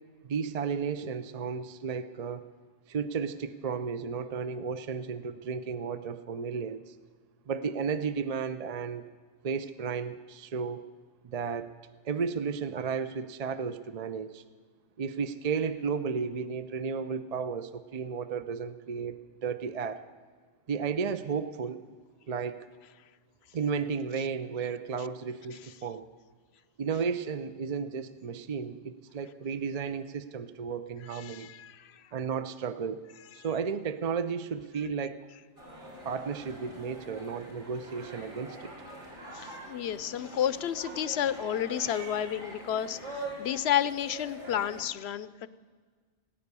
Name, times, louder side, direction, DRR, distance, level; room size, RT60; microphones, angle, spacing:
voice 1, 0.2-2.4 2.9-7.0 7.5-9.1 9.4-10.8 11.2-11.7 12.0-14.4 15.0-20.0 20.7-21.8 22.3-22.7 23.5-26.1 26.8-31.5 32.1-33.1 33.3-35.2 36.0-38.7, right 6 dB, 50° right, 11 dB, 0.5 m, -33 dB
voice 2, 31.1-32.0 39.3-45.5, left 10 dB, 70° left, 16 dB, 0.8 m, -31 dB
sound 1, 35.6-44.9, right 1 dB, 80° right, 3.6 m, -44 dB
18.0 x 9.7 x 6.8 m, 1.5 s
omnidirectional pair, 1.2 m